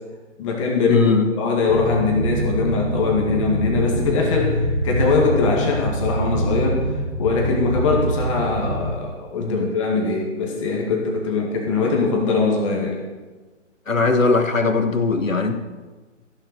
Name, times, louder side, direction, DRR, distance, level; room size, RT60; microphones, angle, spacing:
voice 1, 0.4-1.1 1.3-6.9 7.2-13.0, left 4 dB, 25° left, 0 dB, 2.0 m, -21 dB
voice 2, 0.9-1.3 9.4-9.7 13.9-15.5, left 3 dB, 80° left, 7 dB, 1.6 m, -20 dB
sound 1, 1.7-8.9, right 1 dB, 85° right, 3.1 m, -25 dB
14.5 x 7.2 x 6.7 m, 1.3 s
figure-of-eight pair, 145°, 39 cm